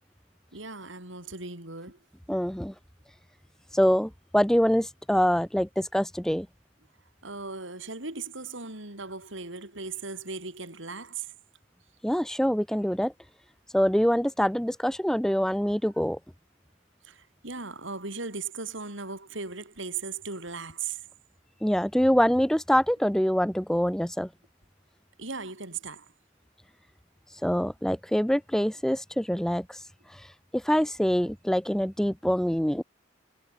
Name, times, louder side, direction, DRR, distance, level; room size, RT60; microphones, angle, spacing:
voice 1, 0.5-2.0 7.2-11.3 17.0-21.0 25.2-26.0, right 4 dB, 75° right, 4.5 m, -37 dB
voice 2, 2.3-2.7 3.7-6.5 12.0-13.1 13.7-16.2 21.6-24.3 27.4-29.8 30.5-32.8, equal, 5° left, 0.5 m, -25 dB
head